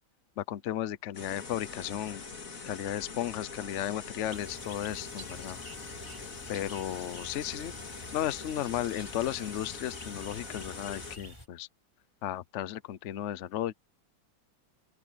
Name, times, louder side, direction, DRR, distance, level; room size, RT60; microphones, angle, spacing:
voice 1, 0.4-2.2 2.6-5.6 6.5-7.7 8.1-11.7 12.2-13.7, left 12 dB, 65° left, 0.7 m, -34 dB
sound 1, 1.1-11.2, left 4 dB, 40° left, 2.5 m, -43 dB
sound 2, 4.3-11.5, equal, 15° left, 5.0 m, -49 dB
open air
omnidirectional pair, 2.2 m